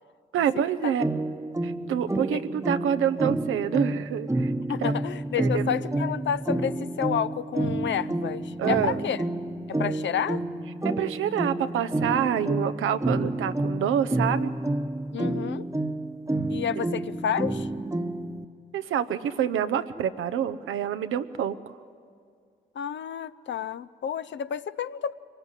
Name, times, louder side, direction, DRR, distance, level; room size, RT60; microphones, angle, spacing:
voice 1, 0.3-1.0 1.6-4.5 4.8-4.9 5.4-5.7 8.6-9.0 10.8-14.5 16.8-16.9 18.7-21.6, right 9 dB, 80° right, 11 dB, 0.8 m, -27 dB
sound 1, 1.0-18.4, right 1 dB, 15° right, 1.1 m, -29 dB
voice 2, 4.7-9.2 9.7-10.4 15.1-15.7 16.5-17.7 22.7-25.1, left 8 dB, 65° left, 14 dB, 0.7 m, -30 dB
24.0 x 18.5 x 9.8 m, 2.3 s
supercardioid pair, 45°, 20 cm